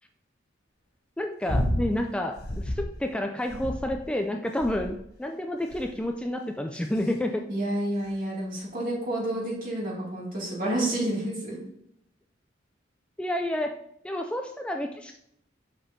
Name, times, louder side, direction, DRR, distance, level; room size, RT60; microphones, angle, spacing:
voice 1, 1.2-7.4 13.2-13.7 14.0-15.1, left 1 dB, 5° left, 4 dB, 0.3 m, -30 dB
sound 1, 1.5-1.9 2.4-2.9 3.5-4.1 4.6-5.1 5.7-6.0 6.7-7.1 8.1-8.2, left 1 dB, 55° left, 1.0 m, -30 dB
voice 2, 7.5-11.6, right 1 dB, 50° right, -4 dB, 2.4 m, -29 dB
6.1 x 5.9 x 2.7 m, 0.74 s
head